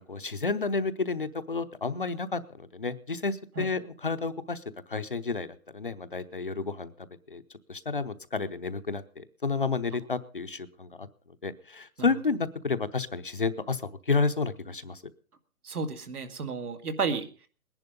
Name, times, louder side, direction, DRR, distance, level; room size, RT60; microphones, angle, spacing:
voice 1, 0.0-4.6 4.9-7.4 7.7-11.1 11.4-15.0, left 4 dB, 35° left, 12 dB, 0.7 m, -31 dB
voice 2, 15.6-17.5, right 4 dB, 75° right, 9 dB, 2.4 m, -32 dB
20.0 x 11.0 x 5.2 m, 0.41 s
hypercardioid pair, 175°, 45 cm